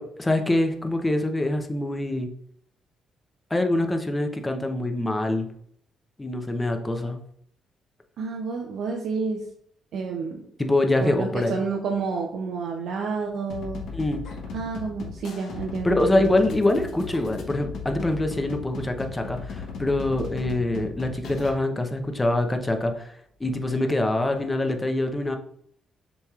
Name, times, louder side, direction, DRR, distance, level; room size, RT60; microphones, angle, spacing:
voice 1, 0.0-2.3 3.5-5.5 6.2-7.2 10.6-11.6 13.9-14.2 15.8-25.4, left 1 dB, 15° left, 5 dB, 0.7 m, -25 dB
voice 2, 8.2-9.4 9.9-10.4 11.0-13.8 14.5-16.3, right 4 dB, 75° right, 0 dB, 0.6 m, -29 dB
sound 1, 13.5-21.5, left 5 dB, 70° left, 0.8 m, -37 dB
6.9 x 3.0 x 2.4 m, 0.66 s
cardioid pair, 90°, 0 cm